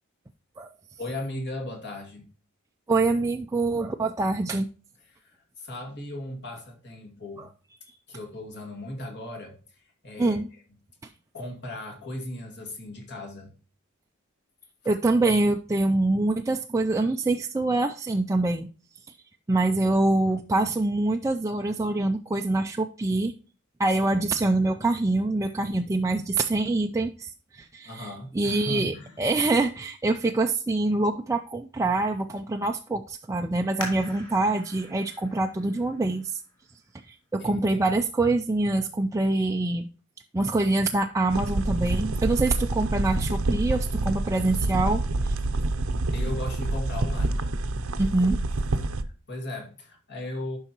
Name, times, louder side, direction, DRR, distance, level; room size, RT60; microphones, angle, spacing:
voice 1, 1.0-2.3 5.0-7.5 8.1-10.6 11.3-13.5 14.8-14.9 27.8-29.2 37.4-37.6 46.1-47.4 49.0-50.6, left 1 dB, 50° left, 2.2 m, -37 dB
voice 2, 2.9-4.7 7.4-7.5 10.2-10.5 14.9-18.7 19.1-19.2 19.5-23.3 23.8-28.1 28.3-36.4 37.1-39.9 40.3-45.4 48.0-48.4, right 2 dB, 15° right, 0.3 m, -25 dB
sound 1, 33.8-37.2 37.8-37.9 38.5-38.9 39.3-39.4, right 1 dB, 20° left, 3.4 m, -42 dB
sound 2, 41.3-49.0, right 2 dB, 70° right, 0.7 m, -27 dB
11.5 x 5.5 x 2.9 m
head